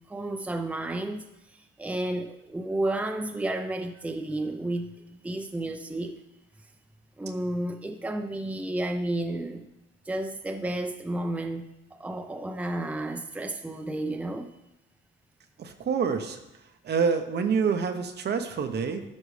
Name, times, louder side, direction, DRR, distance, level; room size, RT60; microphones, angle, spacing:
voice 1, 0.1-1.2 1.5-6.1 7.2-9.7 10.1-11.6 11.9-14.6, right 1 dB, 5° right, 5 dB, 0.6 m, -32 dB
voice 2, 15.6-16.4 16.8-19.0, right 6 dB, 55° right, 7 dB, 0.9 m, -27 dB
13.0 x 5.2 x 3.3 m, 0.90 s
cardioid pair, 90°, 20 cm